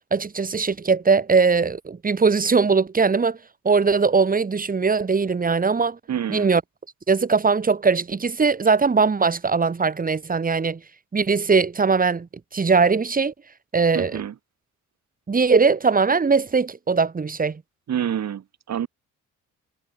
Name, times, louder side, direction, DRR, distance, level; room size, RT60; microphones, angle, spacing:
voice 1, 0.1-3.4 3.6-6.0 6.3-6.6 7.1-10.8 11.1-13.3 13.7-14.2 15.3-17.6, right 5 dB, 30° right, 2.3 m, -20 dB
voice 2, 6.1-6.5 13.9-14.3 17.9-18.9, right 9 dB, 60° right, 5.0 m, -27 dB
cardioid pair, 90°, 30 cm